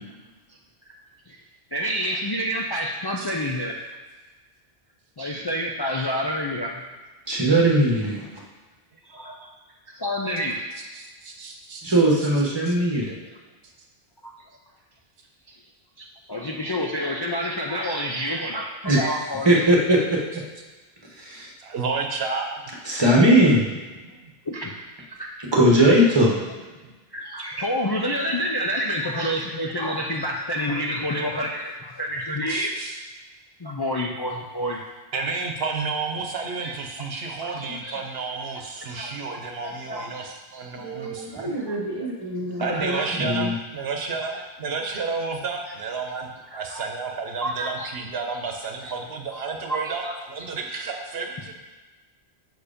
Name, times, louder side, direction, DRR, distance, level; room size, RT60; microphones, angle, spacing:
voice 1, 1.7-3.8 5.2-6.8 9.0-9.5 9.9-10.7 15.5-15.6 16.3-19.6 24.4-24.8 25.2-25.3 27.1-32.8 33.6-34.8 36.6-36.7 37.4-38.0 38.9-39.2 39.6-42.1 42.6-43.1 46.5-46.8 47.4-47.9 49.3-49.4 49.7-50.1, equal, 30° left, -1 dB, 0.5 m, -29 dB
voice 2, 7.3-8.2 11.8-13.1 18.8-19.0 19.4-20.2 21.2-21.5 22.9-23.6 25.4-26.4 40.7-43.5, right 1 dB, 25° right, -2 dB, 1.3 m, -20 dB
voice 3, 10.9-12.3 12.7-12.8 21.6-22.6 24.0-24.3 26.8-26.9 32.5-33.0 35.1-41.5 42.6-51.5, right 4 dB, 70° right, 3 dB, 1.0 m, -31 dB
6.4 x 4.8 x 5.0 m, 1.2 s
omnidirectional pair, 1.1 m